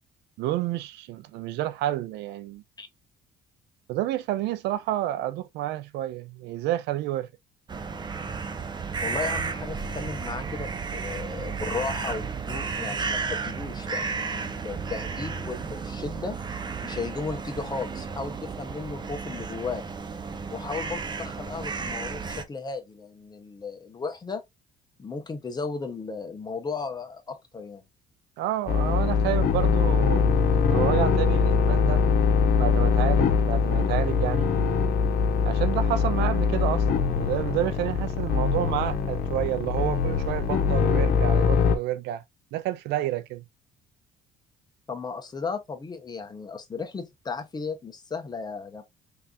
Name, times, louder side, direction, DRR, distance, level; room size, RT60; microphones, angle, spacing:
voice 1, 0.4-2.6 3.9-7.3 28.4-30.3 30.6-32.0 32.6-34.5 35.4-42.2 42.5-43.4, right 13 dB, 85° right, 0.5 m, -29 dB
sound 1, 7.7-22.4, right 5 dB, 25° right, 0.7 m, -33 dB
voice 2, 9.0-16.4 16.8-19.8 20.5-24.4 25.0-27.8 44.9-48.8, left 4 dB, 25° left, 1.1 m, -35 dB
sound 2, 28.7-41.8, left 5 dB, 65° left, 1.1 m, -23 dB
3.7 x 3.4 x 2.7 m
cardioid pair, 110°, 17 cm